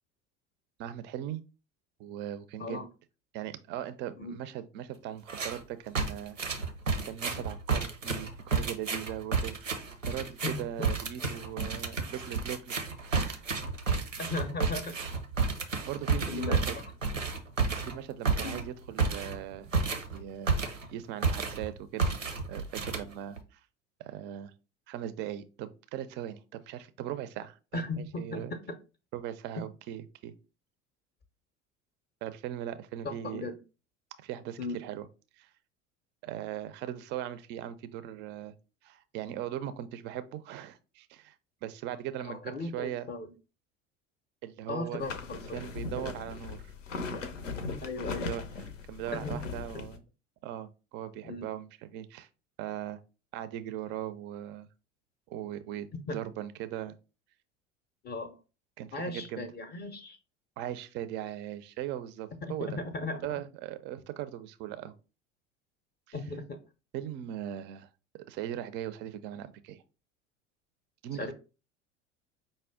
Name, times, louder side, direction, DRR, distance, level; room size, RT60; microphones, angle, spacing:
voice 1, 0.8-1.4 2.0-2.8 3.3-6.4 7.0-12.8 13.0-13.4 13.8-14.1 15.9-16.7 17.8-19.7 20.1-20.6 20.9-22.1 22.4-23.6 24.0-24.5 24.9-28.5 29.1-30.3 32.2-33.5 34.2-35.1 35.4-35.5 36.2-38.5 38.8-41.4 41.6-43.1 44.4-45.0 45.5-46.7 48.1-48.4 48.9-50.0 50.4-52.3 52.6-53.0 53.3-54.7 55.3-57.0 58.8-59.5 60.6-62.8 63.2-64.9 66.1-66.2 66.9-67.9 68.3-69.8 71.0-71.3, right 11 dB, 30° right, 0.4 m, -39 dB
sound 1, 5.3-5.6 6.0-20.9 21.2-21.7 22.0-23.4, right 4 dB, 90° right, 0.6 m, -31 dB
voice 2, 14.2-15.0 16.3-16.8 18.4-18.6 27.7-28.6 29.6-29.7 33.0-33.6 34.6-34.8 42.2-43.3 44.7-45.6 46.0-46.1 47.1-47.2 47.8-48.3 49.1-49.4 51.2-51.5 56.1-56.2 58.0-58.4 58.9-60.2 62.4-63.4 66.1-66.6 71.2-71.3, left 3 dB, 25° left, 0.6 m, -37 dB
sound 2, 45.0-50.0, left 4 dB, 80° left, 0.6 m, -38 dB
5.1 x 2.1 x 3.5 m
figure-of-eight pair, 70°, 37 cm